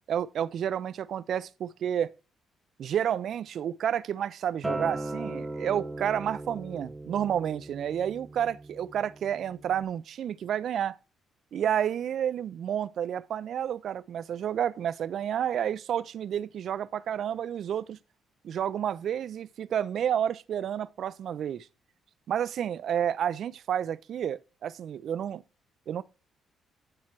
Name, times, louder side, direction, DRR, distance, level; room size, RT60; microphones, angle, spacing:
voice 1, 0.0-2.1 2.8-11.0 11.5-18.0 18.4-21.7 22.3-25.4 25.9-26.0, right 9 dB, 65° right, 0.3 m, -30 dB
Acoustic guitar, 4.6-9.8, right 2 dB, 20° right, 1.0 m, -38 dB
9.6 x 4.4 x 4.4 m
cardioid pair, 90°, 0 cm